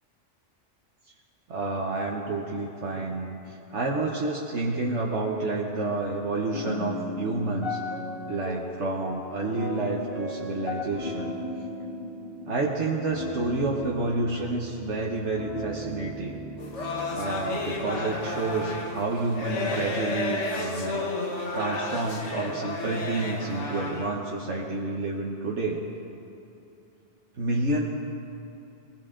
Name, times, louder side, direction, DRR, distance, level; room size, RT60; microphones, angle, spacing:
voice 1, 1.5-7.8 8.3-11.3 12.5-16.4 16.8-25.8 27.4-27.8, right 2 dB, 70° right, -2 dB, 1.5 m, -29 dB
sound 1, 6.5-19.8, left 1 dB, 50° left, 2.8 m, -37 dB
sound 2, 16.6-24.1, left 2 dB, 70° left, 1.8 m, -32 dB
21.5 x 16.5 x 3.8 m, 2.9 s
omnidirectional pair, 1.2 m